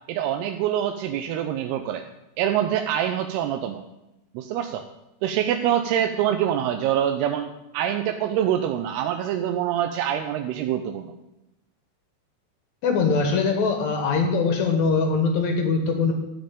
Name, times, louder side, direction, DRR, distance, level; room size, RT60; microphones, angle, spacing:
voice 1, 0.1-2.0 2.4-3.8 4.3-4.8 5.2-11.1, right 10 dB, 85° right, 6 dB, 2.6 m, -25 dB
voice 2, 12.8-16.1, left 4 dB, 60° left, 4 dB, 2.1 m, -22 dB
12.5 x 5.2 x 8.8 m, 0.94 s
omnidirectional pair, 4.8 m